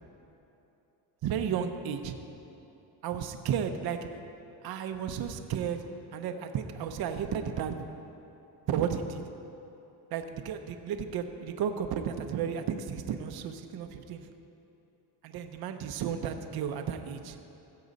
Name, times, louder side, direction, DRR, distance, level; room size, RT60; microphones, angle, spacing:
voice 1, 1.2-2.2 3.0-4.1 4.6-7.9 8.7-9.2 10.1-14.3 15.2-17.4, right 8 dB, 50° right, 6 dB, 0.7 m, -33 dB
15.5 x 7.7 x 4.1 m, 2.9 s
cardioid pair, 140°, 47 cm